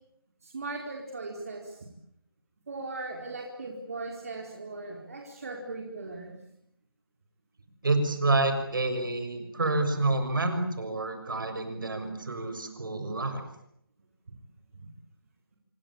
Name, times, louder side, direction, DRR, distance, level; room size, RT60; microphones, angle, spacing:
voice 1, 0.4-1.9 2.7-6.3 14.7-14.9, right 3 dB, 40° right, 0 dB, 4.8 m, -38 dB
voice 2, 7.8-13.5, right 2 dB, 60° right, 8 dB, 6.4 m, -28 dB
27.0 x 23.5 x 8.8 m, 0.75 s
hypercardioid pair, 175°, 12 cm